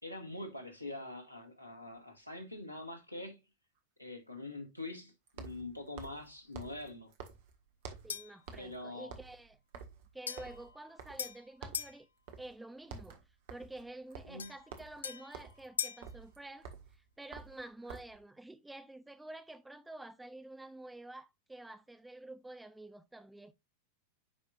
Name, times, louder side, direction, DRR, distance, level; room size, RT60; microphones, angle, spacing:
voice 1, 0.0-3.4 4.0-7.1 8.6-9.2 14.3-14.5, left 2 dB, 90° right, 1.8 m, -44 dB
sound 1, 2.0-2.1 5.3-8.2 8.5-8.8 9.0-11.4 11.6-11.9 12.3-12.5 12.8-18.2, right 6 dB, 50° right, 1.5 m, -50 dB
voice 2, 8.0-9.6 10.1-12.1 12.4-13.2 13.5-23.5, right 2 dB, 5° right, 0.7 m, -49 dB
sound 2, 8.1-8.5 10.3-12.0 14.4-16.1, left 7 dB, 70° left, 0.5 m, -41 dB
9.7 x 5.1 x 2.4 m
figure-of-eight pair, 90°, 0 cm